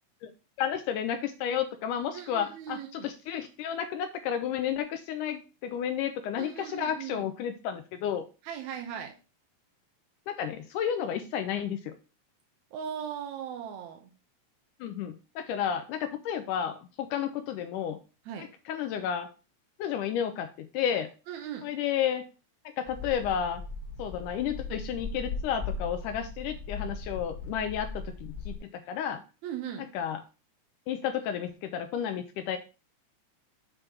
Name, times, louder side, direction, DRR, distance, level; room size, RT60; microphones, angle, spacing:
voice 1, 0.6-8.3 10.3-11.9 14.8-18.0 18.4-19.3 19.8-21.1 21.6-22.3 22.8-23.6 24.0-29.2 29.8-30.2 30.9-32.6, left 9 dB, 80° left, 8 dB, 1.9 m, -32 dB
voice 2, 2.1-3.1 6.4-7.3 8.4-9.1 12.7-14.1 18.3-18.5 21.3-21.7 29.4-29.9, right 8 dB, 75° right, 3 dB, 1.8 m, -38 dB
sound 1, 22.9-28.6, left 3 dB, 20° left, 1.5 m, -38 dB
7.7 x 3.3 x 5.8 m, 0.33 s
omnidirectional pair, 4.1 m